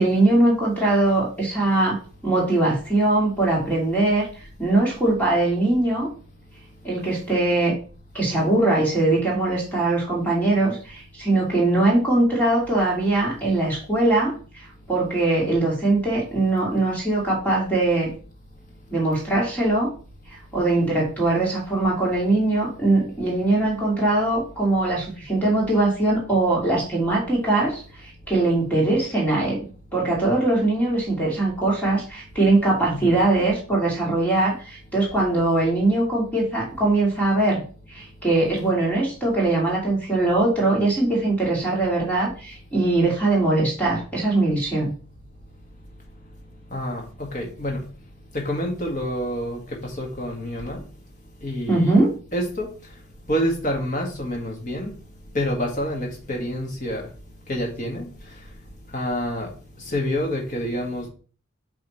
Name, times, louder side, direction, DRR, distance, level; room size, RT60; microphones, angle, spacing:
voice 1, 0.0-2.0 2.2-4.3 4.6-6.1 6.8-7.7 8.1-18.1 18.9-19.9 20.3-29.6 29.9-37.6 37.9-44.9 51.7-52.1, right 2 dB, 5° left, -4 dB, 2.6 m, -21 dB
voice 2, 32.9-33.2 46.7-47.9 48.3-50.8 51.4-51.9 52.3-53.0 53.3-54.9 55.3-57.1 57.5-58.6 58.9-61.1, equal, 35° left, 0 dB, 1.7 m, -28 dB
8.0 x 3.6 x 4.3 m, 0.39 s
head